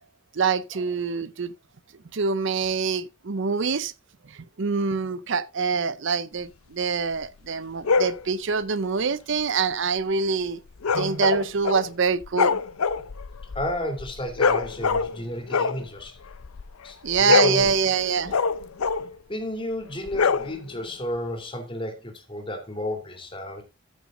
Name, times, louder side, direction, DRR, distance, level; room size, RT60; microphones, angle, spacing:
voice 1, 0.3-1.5 2.1-3.9 4.6-10.6 10.9-12.6 17.0-18.3, right 5 dB, 60° right, 0.6 m, -25 dB
sound 1, 7.8-8.2 10.8-11.9 12.2-15.2 15.5-16.7 17.1-19.1 20.1-20.9, left 5 dB, 90° left, 0.6 m, -24 dB
voice 2, 13.5-16.2 16.8-17.7 18.3-18.4 19.3-23.6, left 1 dB, 25° left, 2.7 m, -32 dB
14.0 x 6.0 x 3.7 m
head